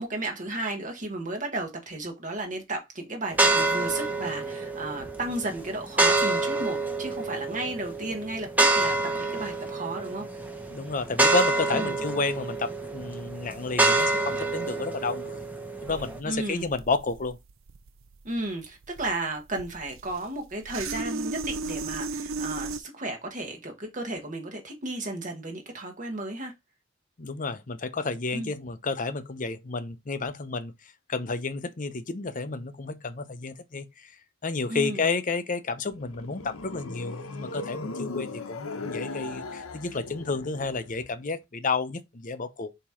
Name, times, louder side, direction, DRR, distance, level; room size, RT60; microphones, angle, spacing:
voice 1, 0.0-10.3 11.7-12.0 16.2-16.7 18.2-26.5 28.3-28.5 34.7-35.0, right 2 dB, 40° right, 1.4 m, -34 dB
sound 1, 3.3-16.2, right 2 dB, 10° right, 1.0 m, -27 dB
voice 2, 10.7-15.5 15.8-17.4 27.2-30.7 31.1-34.1 34.4-42.7, left 4 dB, 40° left, 0.7 m, -31 dB
sound 2, 15.9-22.8, right 3 dB, 75° right, 0.6 m, -36 dB
sound 3, 35.8-41.1, left 3 dB, 85° left, 0.9 m, -38 dB
7.2 x 2.9 x 4.9 m
head